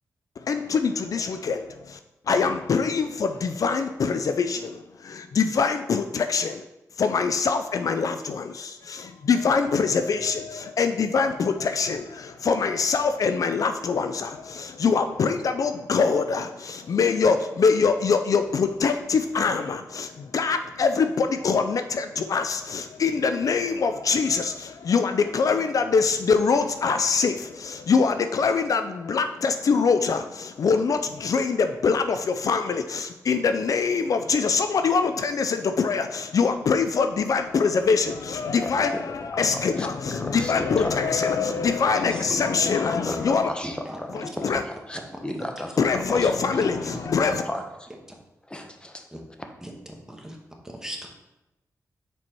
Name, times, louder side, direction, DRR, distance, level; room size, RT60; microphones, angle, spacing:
voice 1, 0.4-2.0 2.3-6.6 7.0-43.5 44.1-44.6 45.8-47.4, left 5 dB, 60° left, 8 dB, 0.4 m, -24 dB
voice 2, 38.6-47.9 48.5-49.0, left 1 dB, 15° left, 4 dB, 1.0 m, -36 dB
voice 3, 43.6-44.0 44.9-45.4 46.8-47.0 49.1-49.2 49.6-49.7 50.1-50.4 50.6-51.2, right 1 dB, 10° right, 1 dB, 1.4 m, -38 dB
6.1 x 4.4 x 4.5 m, 0.97 s
cardioid pair, 65°, 6 cm